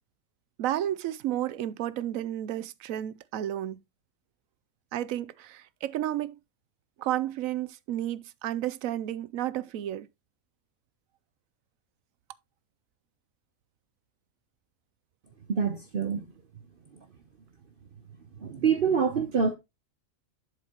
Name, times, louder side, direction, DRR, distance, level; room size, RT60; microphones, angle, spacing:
voice 1, 0.6-3.8 4.9-6.4 7.0-10.1, right 12 dB, 85° right, 1.0 m, -32 dB
voice 2, 15.5-16.2 18.4-19.5, right 6 dB, 50° right, 0.9 m, -26 dB
11.0 x 5.0 x 2.9 m
omnidirectional pair, 1.4 m